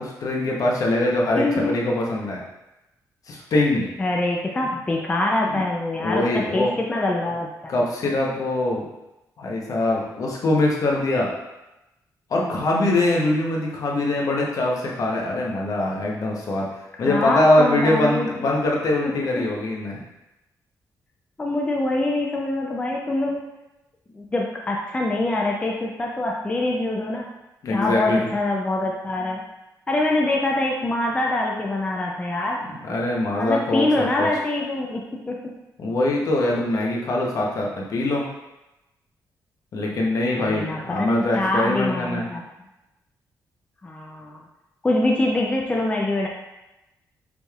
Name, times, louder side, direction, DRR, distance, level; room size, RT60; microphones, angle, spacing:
voice 1, 0.0-2.4 3.3-3.9 5.5-5.6 6.0-6.7 7.7-8.8 9.4-11.3 12.3-16.7 17.0-20.0 27.6-28.3 32.6-33.9 34.2-34.3 35.8-38.2 39.7-42.3, left 2 dB, 55° left, -2 dB, 0.8 m, -23 dB
voice 2, 1.4-1.8 4.0-7.7 17.0-18.3 21.4-23.4 24.1-27.3 27.7-29.4 29.9-32.6 33.4-35.4 40.4-42.4 43.8-44.4 44.8-46.3, left 2 dB, 15° left, -1 dB, 0.4 m, -24 dB
5.1 x 3.2 x 2.4 m, 0.98 s
cardioid pair, 135°, 7 cm